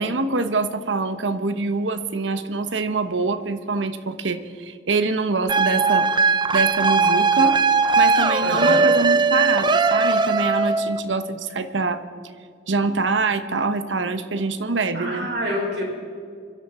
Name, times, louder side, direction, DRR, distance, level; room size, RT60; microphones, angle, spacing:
voice 1, 0.0-6.1 6.5-7.6 8.0-12.0 12.7-15.3, right 3 dB, 90° right, 10 dB, 1.0 m, -25 dB
sound 1, 5.5-11.0, right 4 dB, 25° right, 0.5 m, -19 dB
voice 2, 8.4-8.8 14.9-15.8, equal, 70° right, -2 dB, 5.4 m, -26 dB
24.5 x 12.5 x 4.4 m, 2.2 s
head